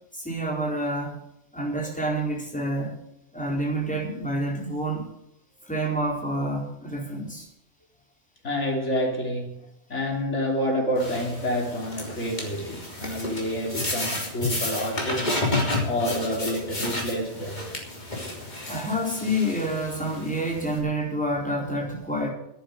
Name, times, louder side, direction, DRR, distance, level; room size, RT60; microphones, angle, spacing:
voice 1, 0.1-1.2 1.5-2.9 3.3-5.1 5.6-7.5 18.7-22.3, right 1 dB, 5° left, -1 dB, 4.3 m, -28 dB
voice 2, 8.4-9.6 9.9-15.4 15.8-17.7, equal, 85° left, 1 dB, 3.6 m, -28 dB
sound 1, 11.0-20.8, left 2 dB, 40° left, 3.5 m, -31 dB
11.5 x 10.0 x 9.5 m, 0.79 s
omnidirectional pair, 1.2 m